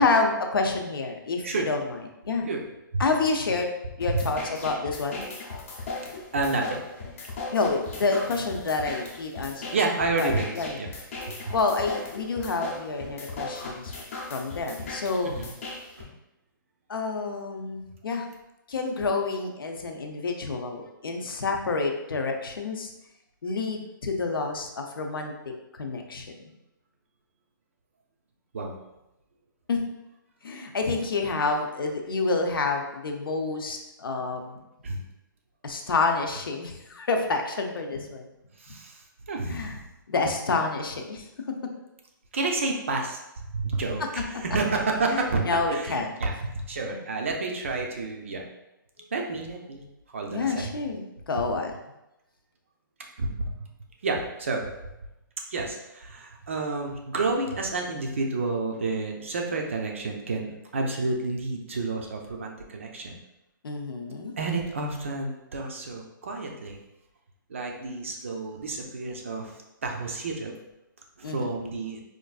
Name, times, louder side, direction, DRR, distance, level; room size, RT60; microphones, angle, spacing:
voice 1, 0.0-2.0 2.2-2.5 3.0-3.7 4.0-5.3 7.5-9.8 10.2-10.8 11.5-13.9 14.3-15.3 16.9-18.3 18.7-22.9 23.4-26.3 29.7-29.8 30.4-34.6 35.6-38.2 39.5-39.8 40.1-41.2 44.0-44.1 45.1-46.1 46.9-47.0 50.3-51.7 63.6-64.3 71.2-71.5, left 3 dB, 80° left, 3 dB, 0.6 m, -28 dB
sound 1, 4.0-16.0, left 3 dB, 35° left, 0.7 m, -38 dB
voice 2, 6.3-6.8 9.7-10.5 10.8-10.9 11.3-11.5 15.2-15.5 16.0-16.1 28.5-28.8 34.8-35.0 38.6-39.8 42.3-48.4 49.1-49.8 50.1-50.7 53.2-53.7 54.0-54.9 55.5-63.2 64.4-66.8 67.5-70.5 71.2-72.0, right 3 dB, 35° right, 2 dB, 0.4 m, -30 dB
4.4 x 2.5 x 2.3 m, 0.92 s
hypercardioid pair, 175°, 12 cm